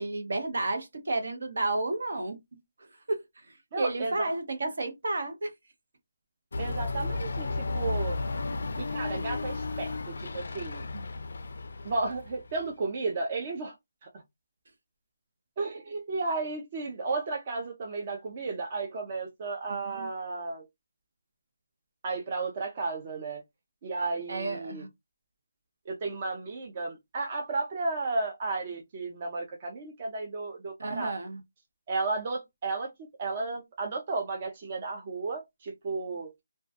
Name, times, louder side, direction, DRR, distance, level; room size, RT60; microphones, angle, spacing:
voice 1, 0.0-2.4 3.1-3.2 3.8-5.5 10.9-11.0 20.0-20.1 24.3-24.9 30.8-31.4, right 2 dB, 65° right, 0.8 m, -31 dB
voice 2, 3.7-4.3 6.6-8.2 8.8-10.8 11.8-13.7 14.0-14.1 15.6-20.7 22.0-23.4 23.8-24.9 25.9-31.2 31.9-36.4, right 3 dB, 30° right, 0.4 m, -33 dB
sound 1, 6.5-12.7, left 3 dB, 65° left, 0.3 m, -33 dB
2.2 x 2.1 x 2.7 m
hypercardioid pair, 170°, 0 cm